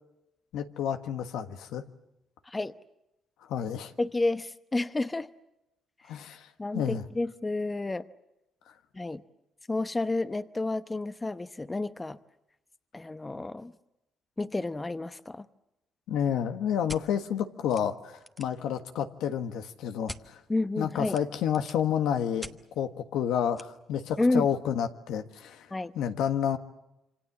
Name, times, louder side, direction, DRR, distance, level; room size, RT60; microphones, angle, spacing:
voice 1, 0.5-1.8 3.5-3.9 6.1-7.0 16.1-20.4 20.8-25.7 25.9-26.6, left 9 dB, 90° left, 7 dB, 1.5 m, -30 dB
voice 2, 4.0-5.3 6.6-8.0 8.9-9.2 9.7-12.2 12.9-13.7 14.4-15.5 20.5-21.2 24.2-24.5 25.7-25.9, left 2 dB, 20° left, 12 dB, 0.9 m, -30 dB
sound 1, 16.9-17.0 17.7-17.8 18.1-18.6 20.1-20.2 21.1-21.9 22.4-22.6 23.6-23.7, equal, ahead, 1.2 m, -42 dB
27.0 x 25.0 x 7.4 m, 0.93 s
cardioid pair, 90°, 0 cm